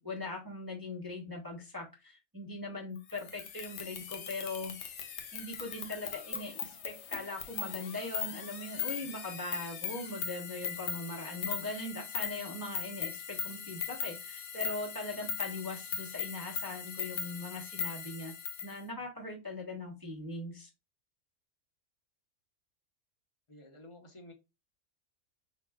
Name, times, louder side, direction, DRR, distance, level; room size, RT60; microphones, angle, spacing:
voice 1, 0.0-4.7 5.3-18.3 18.6-20.7, left 2 dB, 15° right, 0.9 m, -40 dB
sound 1, 3.1-18.7, left 7 dB, 60° left, 0.8 m, -39 dB
voice 2, 23.5-24.3, left 1 dB, 25° left, 0.8 m, -52 dB
5.2 x 3.5 x 2.3 m
omnidirectional pair, 1.5 m